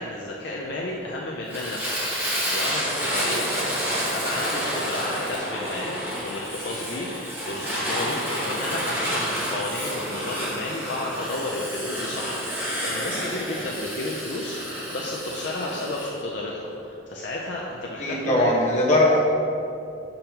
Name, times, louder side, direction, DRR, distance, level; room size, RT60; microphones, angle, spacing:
voice 1, 0.0-2.0 2.4-18.5, left 2 dB, 60° left, -3 dB, 0.5 m, -32 dB
Fire, 1.5-16.1, equal, 10° right, 1.1 m, -29 dB
voice 2, 18.0-19.2, left 1 dB, 35° left, -4 dB, 1.1 m, -20 dB
7.0 x 5.3 x 2.9 m, 2.7 s
head